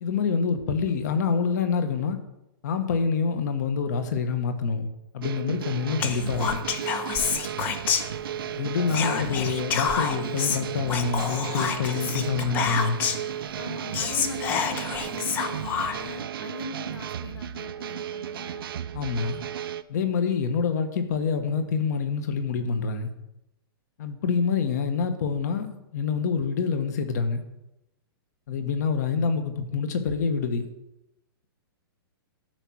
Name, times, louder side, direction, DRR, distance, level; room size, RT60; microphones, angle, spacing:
voice 1, 0.0-2.2 2.6-4.9 5.1-6.6 8.6-13.0 18.9-19.4 19.9-23.1 24.0-27.4 28.5-30.6, left 5 dB, 45° left, 8 dB, 1.3 m, -26 dB
sound 1, 5.2-19.8, right 9 dB, 65° right, 0.6 m, -34 dB
Whispering, 6.0-8.5 8.9-13.3 13.7-13.8 13.9-16.2, left 7 dB, 15° left, 0.5 m, -28 dB
voice 2, 13.6-18.7, left 4 dB, 75° left, 10 dB, 1.0 m, -41 dB
13.5 x 5.8 x 6.3 m, 0.90 s
hypercardioid pair, 170°, 13 cm